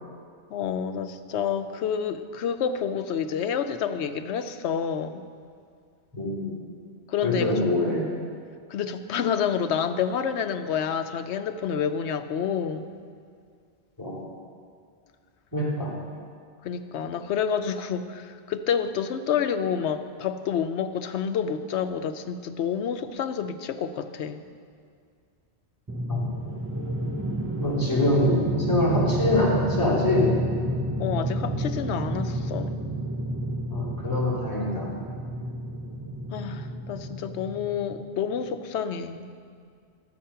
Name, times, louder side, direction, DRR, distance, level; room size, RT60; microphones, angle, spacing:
voice 1, 0.5-5.2 7.1-7.7 8.7-12.9 16.6-24.4 31.0-32.9 36.3-39.3, left 7 dB, 85° left, 9 dB, 0.9 m, -28 dB
voice 2, 6.1-6.6 7.2-8.0 14.0-14.2 15.5-15.9 26.1-26.3 27.6-28.4 28.7-30.3 33.7-34.9, left 1 dB, 20° left, -7 dB, 2.8 m, -24 dB
sound 1, 25.9-38.1, right 1 dB, 20° right, 0.4 m, -30 dB
11.5 x 7.8 x 5.6 m, 2.2 s
omnidirectional pair, 1.1 m